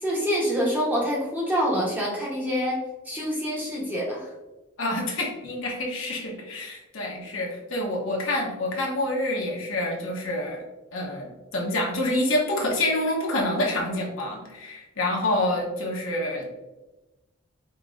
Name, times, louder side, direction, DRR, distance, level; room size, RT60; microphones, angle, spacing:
voice 1, 0.0-2.8 3.0-4.3, equal, 10° right, -5 dB, 1.0 m, -26 dB
voice 2, 4.8-10.6 10.9-16.5, left 1 dB, 65° left, -1 dB, 1.0 m, -27 dB
5.3 x 3.0 x 2.5 m, 1.1 s
head